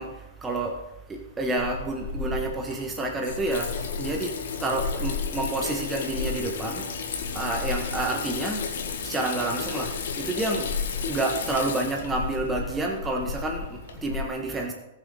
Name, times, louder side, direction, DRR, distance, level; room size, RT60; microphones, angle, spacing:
voice 1, 0.0-14.7, right 2 dB, 15° right, 1 dB, 1.4 m, -30 dB
Water tap faucet / Sink (filling or washing), 1.6-14.2, left 5 dB, 60° left, 1.9 m, -32 dB
19.5 x 7.5 x 3.9 m, 0.96 s
figure-of-eight pair, 105°, 0 cm